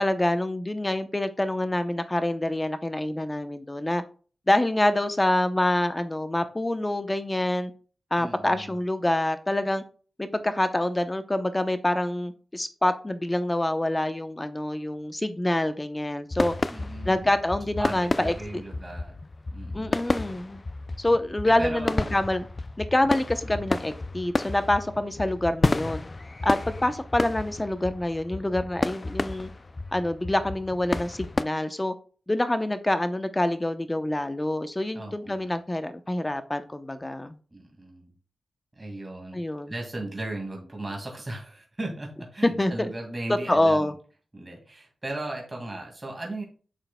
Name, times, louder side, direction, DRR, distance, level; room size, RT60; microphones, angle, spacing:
voice 1, 0.0-4.0 4.5-7.7 8.1-9.8 10.2-16.5 17.0-18.6 19.7-20.6 21.0-22.5 22.8-26.0 26.4-29.5 29.9-31.9 32.3-37.4 39.3-39.7 42.6-42.7 43.5-43.9, left 1 dB, 20° left, 10 dB, 0.7 m, -26 dB
voice 2, 8.2-8.8 16.7-17.3 17.8-19.1 19.5-20.0 21.5-22.2 23.4-23.7 34.9-35.6 37.5-38.1 38.7-39.4 39.7-43.9 44.3-46.4, right 2 dB, 25° right, 0 dB, 2.0 m, -37 dB
sound 1, 16.3-31.4, left 2 dB, 35° left, 0.3 m, -31 dB
9.2 x 6.5 x 2.2 m, 0.39 s
wide cardioid pair, 85°, 0 cm